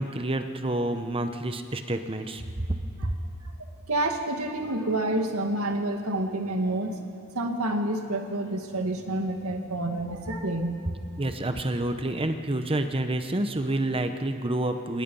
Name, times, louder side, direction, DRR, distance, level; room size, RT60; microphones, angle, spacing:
voice 1, 0.0-3.2 11.2-15.0, right 1 dB, 25° right, 7 dB, 1.0 m, -28 dB
voice 2, 3.9-7.0 7.3-10.8, right 1 dB, 75° right, 4 dB, 2.0 m, -28 dB
27.0 x 20.0 x 5.6 m, 2.6 s
head